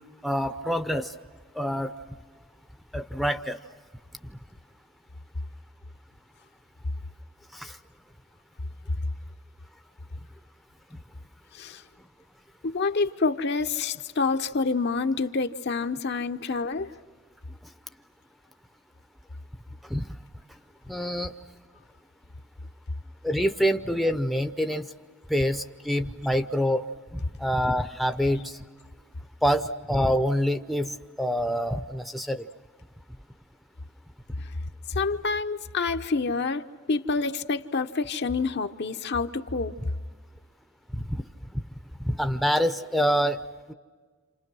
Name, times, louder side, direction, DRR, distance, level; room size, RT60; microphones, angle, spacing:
voice 1, 0.2-1.1 1.5-1.9 2.9-3.6 4.3-4.4 7.5-7.7 19.9-20.1 20.9-21.3 23.2-24.9 25.3-26.8 27.1-28.6 29.4-32.5 40.9-41.2 42.0-43.4 43.7-43.8, equal, ahead, 7 dB, 0.7 m, -26 dB
voice 2, 12.6-16.9 34.9-39.7, left 4 dB, 55° left, 7 dB, 0.8 m, -27 dB
29.0 x 27.5 x 6.2 m, 1.5 s
head